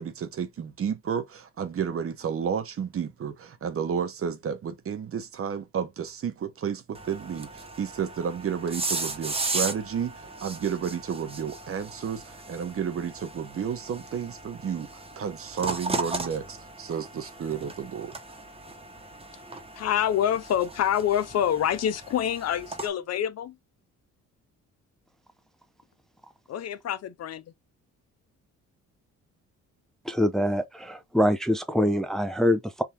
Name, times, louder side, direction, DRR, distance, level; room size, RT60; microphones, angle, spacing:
voice 1, 0.0-14.9 15.2-18.1, right 7 dB, 50° right, 1.0 m, -31 dB
sound 1, 7.0-22.9, right 3 dB, 20° right, 1.0 m, -37 dB
voice 2, 19.8-23.6 26.5-27.4, left 10 dB, 55° left, 0.6 m, -26 dB
voice 3, 30.1-32.8, equal, ahead, 0.5 m, -24 dB
3.6 x 2.6 x 4.4 m
cardioid pair, 90°, 30 cm